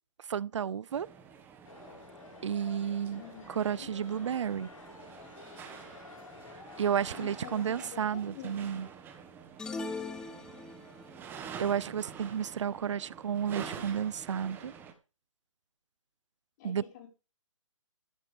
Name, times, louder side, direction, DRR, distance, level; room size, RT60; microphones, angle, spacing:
voice 1, 0.3-1.1 2.4-3.2 3.5-4.7 6.8-8.9 11.6-14.7 16.6-16.8, right 8 dB, 60° right, 0.6 m, -32 dB
sound 1, 0.9-14.9, right 7 dB, 10° right, 1.5 m, -48 dB
sound 2, 1.6-7.9, left 4 dB, 75° left, 7.4 m, -51 dB
voice 2, 3.2-3.9 7.1-8.9 11.1-11.2 16.6-17.1, left 8 dB, 30° left, 4.8 m, -48 dB
sound 3, 9.6-11.1, left 3 dB, 5° left, 0.7 m, -39 dB
14.5 x 9.5 x 5.1 m
hypercardioid pair, 155°, 17 cm